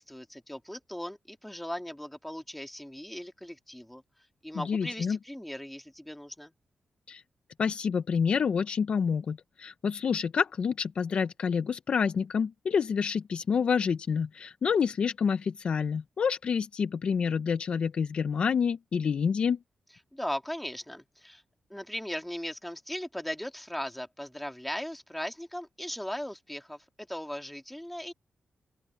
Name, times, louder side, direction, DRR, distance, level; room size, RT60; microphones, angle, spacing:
voice 1, 0.0-4.0 4.4-6.5 20.1-21.4 21.7-28.1, equal, 5° left, 1.8 m, -38 dB
voice 2, 4.5-5.2 7.1-7.2 7.6-19.6, left 6 dB, 50° left, 0.5 m, -28 dB
open air
wide cardioid pair, 175°, 2 cm